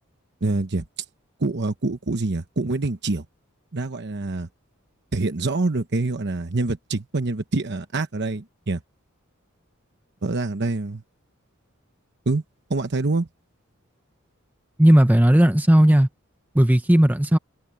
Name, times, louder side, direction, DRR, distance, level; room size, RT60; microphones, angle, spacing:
voice 1, 0.4-1.0 1.4-3.2 3.7-4.5 5.1-8.8 10.2-11.0 12.3-12.4 12.7-13.3, right 3 dB, 55° right, 1.0 m, -25 dB
voice 2, 14.8-16.1 16.5-17.4, right 1 dB, 10° right, 0.7 m, -15 dB
head